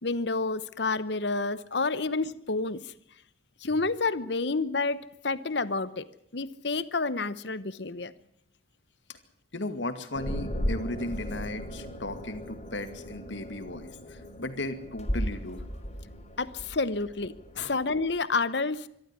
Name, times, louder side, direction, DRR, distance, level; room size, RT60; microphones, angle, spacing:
voice 1, 0.0-2.8 3.6-6.1 6.3-8.1 16.4-18.9, left 3 dB, 65° left, 16 dB, 1.0 m, -29 dB
voice 2, 9.5-15.6 17.6-17.7, left 2 dB, 80° left, 10 dB, 2.3 m, -36 dB
sound 1, 10.1-18.1, equal, 40° left, 3.5 m, -36 dB
24.0 x 13.5 x 9.8 m, 0.73 s
head